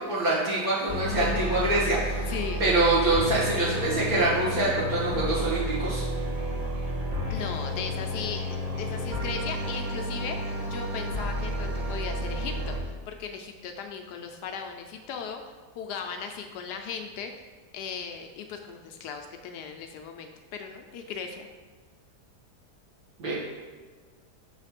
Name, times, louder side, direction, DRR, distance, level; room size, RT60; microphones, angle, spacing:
voice 1, 0.0-2.2 2.6-6.0 23.2-23.3, right 2 dB, 60° right, -9 dB, 2.1 m, -25 dB
sound 1, 0.9-12.8, equal, 35° right, 1.6 m, -31 dB
voice 2, 2.3-2.6 7.3-15.4 15.7-17.3 17.7-21.5, left 6 dB, 85° left, 4 dB, 1.2 m, -37 dB
6.9 x 3.2 x 5.8 m, 1.5 s
omnidirectional pair, 1.7 m